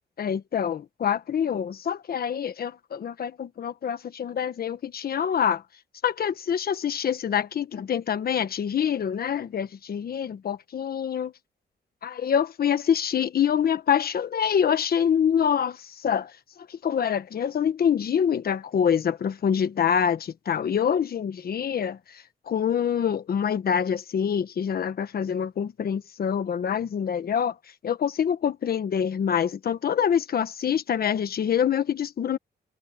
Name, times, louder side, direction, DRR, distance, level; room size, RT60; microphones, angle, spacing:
voice 1, 0.2-5.6 6.0-11.3 12.0-16.3 16.7-22.0 22.5-27.5 27.8-32.4, left 8 dB, 55° left, 1.3 m, -25 dB
wide cardioid pair, 140°, 18 cm